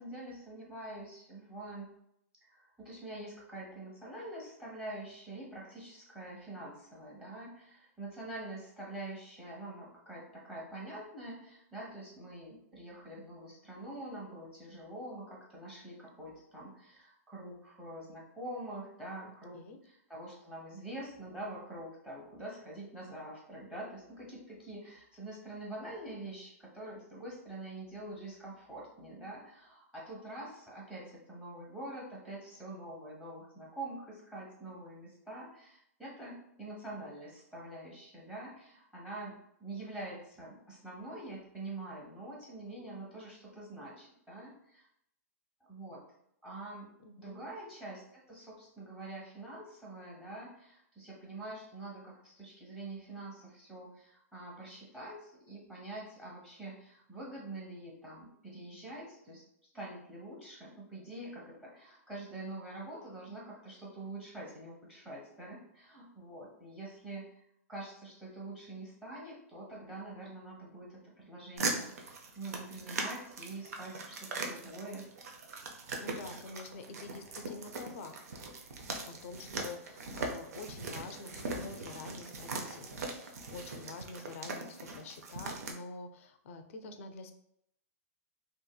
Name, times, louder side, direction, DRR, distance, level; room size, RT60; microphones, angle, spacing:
voice 1, 0.0-1.9 2.4-44.9 45.7-46.0 46.4-46.9 47.2-59.4 59.7-67.4 67.7-75.1, right 2 dB, 10° right, -5 dB, 0.9 m, -45 dB
voice 2, 47.0-47.4 76.0-78.1 79.0-87.3, left 3 dB, 60° left, 7 dB, 0.4 m, -47 dB
sound 1, 71.6-85.7, right 3 dB, 80° right, 0.5 m, -40 dB
2.7 x 2.5 x 2.2 m, 0.75 s
hypercardioid pair, 135°, 8 cm